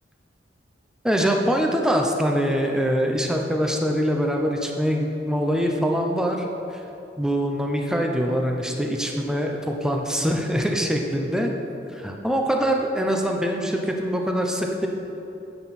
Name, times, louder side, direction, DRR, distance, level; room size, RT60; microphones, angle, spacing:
voice 1, 1.0-6.5 6.7-6.8 7.2-11.5 11.9-14.9, equal, 5° right, 2 dB, 0.7 m, -23 dB
10.0 x 8.9 x 4.3 m, 2.9 s
head